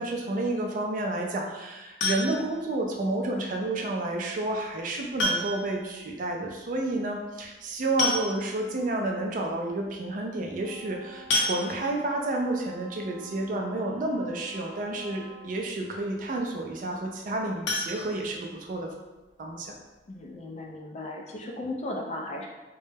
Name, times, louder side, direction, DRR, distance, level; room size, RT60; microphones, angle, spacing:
voice 1, 0.0-18.9 19.4-19.7, right 2 dB, 45° right, 1 dB, 0.4 m, -30 dB
sound 1, 2.0-2.6 4.1-4.2 5.2-5.8 6.1-6.2 6.5-6.6 7.6-7.7 8.0-8.7 9.3-9.4 9.7-9.9 11.3-12.1 17.6-18.8 19.2-19.3 19.7-19.8 20.2-20.3, left 2 dB, 90° left, 0.5 m, -29 dB
Wind instrument woodwind instrument, 10.6-15.7, right 2 dB, 55° left, 0.8 m, -49 dB
voice 2, 20.1-22.5, left 1 dB, 35° left, 1 dB, 0.3 m, -36 dB
2.2 x 2.0 x 3.2 m, 1.1 s
head